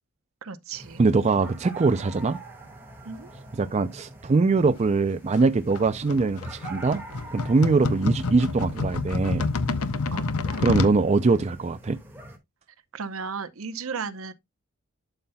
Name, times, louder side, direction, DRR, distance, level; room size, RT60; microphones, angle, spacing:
voice 1, 0.4-1.0 1.4-1.6 3.0-3.3 7.8-8.0 10.1-10.3 12.9-14.3, right 5 dB, 65° right, 0.8 m, -35 dB
sound 1, 0.7-12.4, right 2 dB, 10° right, 1.9 m, -45 dB
voice 2, 1.0-2.4 3.6-7.0 7.3-9.5 10.6-12.0, right 3 dB, 30° right, 0.4 m, -22 dB
sound 2, 5.3-11.0, left 3 dB, 75° left, 0.8 m, -29 dB
11.5 x 5.5 x 2.2 m
head